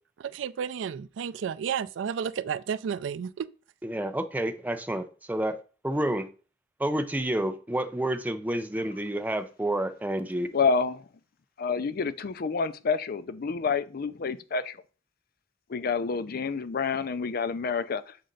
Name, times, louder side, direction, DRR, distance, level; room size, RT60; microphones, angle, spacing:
voice 1, 0.2-3.5, right 7 dB, 80° right, 0.3 m, -32 dB
voice 2, 3.8-5.6 5.8-6.3 6.8-10.5, right 1 dB, 10° right, 0.6 m, -29 dB
voice 3, 10.5-11.0 11.6-14.7 15.7-18.0, left 5 dB, 55° left, 0.5 m, -28 dB
6.6 x 4.3 x 3.8 m
head